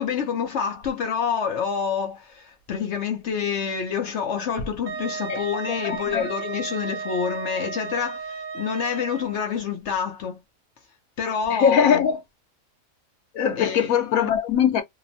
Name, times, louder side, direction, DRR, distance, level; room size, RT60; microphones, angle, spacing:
voice 1, 0.0-10.4 11.2-12.0 13.6-13.9, left 7 dB, 65° left, 0.9 m, -27 dB
Wind instrument woodwind instrument, 4.9-9.5, right 5 dB, 80° right, 1.1 m, -34 dB
voice 2, 5.8-6.3 11.5-12.2 13.3-14.8, left 8 dB, 85° left, 1.1 m, -21 dB
2.9 x 2.0 x 2.6 m
omnidirectional pair, 1.4 m